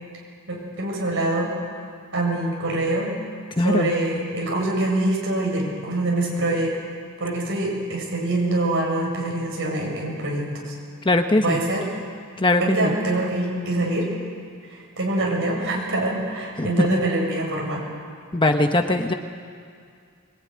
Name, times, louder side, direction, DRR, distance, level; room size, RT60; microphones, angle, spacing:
voice 1, 0.5-1.5 2.1-3.1 3.6-6.8 7.2-10.7 11.4-11.9 12.6-14.1 14.7-17.8, right 2 dB, 60° right, -1 dB, 7.7 m, -24 dB
voice 2, 3.6-3.9 11.0-11.6 12.4-12.9 16.6-16.9 18.3-19.1, left 2 dB, 20° left, 5 dB, 1.0 m, -20 dB
22.5 x 22.5 x 9.7 m, 2.2 s
head